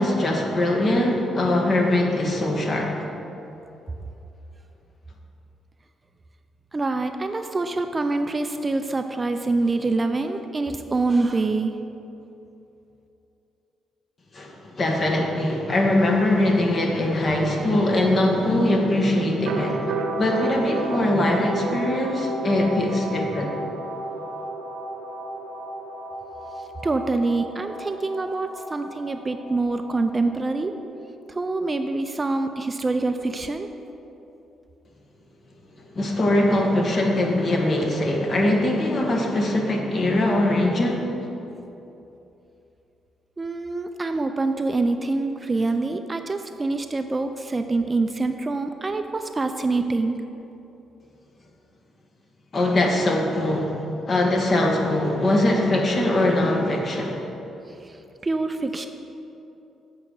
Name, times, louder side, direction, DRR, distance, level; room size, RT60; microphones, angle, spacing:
voice 1, 0.0-3.0 14.3-19.9 20.2-23.5 35.9-41.1 52.5-57.2, left 1 dB, 45° left, 1 dB, 1.4 m, -22 dB
voice 2, 6.7-11.7 26.8-30.7 31.3-33.7 43.4-50.2 58.2-58.9, right 3 dB, 25° right, 7 dB, 0.5 m, -25 dB
sound 1, 17.3-30.8, right 2 dB, 85° right, 0.7 m, -33 dB
8.0 x 5.1 x 7.5 m, 2.9 s
cardioid pair, 90°, 0 cm